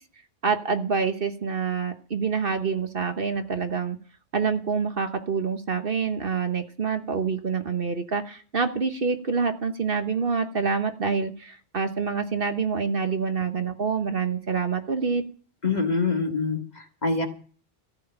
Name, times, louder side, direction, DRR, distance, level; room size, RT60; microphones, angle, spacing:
voice 1, 0.4-4.0 4.3-15.2, right 5 dB, 50° right, 8 dB, 1.3 m, -26 dB
voice 2, 15.6-17.3, left 4 dB, 35° left, 5 dB, 2.0 m, -25 dB
14.5 x 6.5 x 9.0 m, 0.41 s
omnidirectional pair, 1.2 m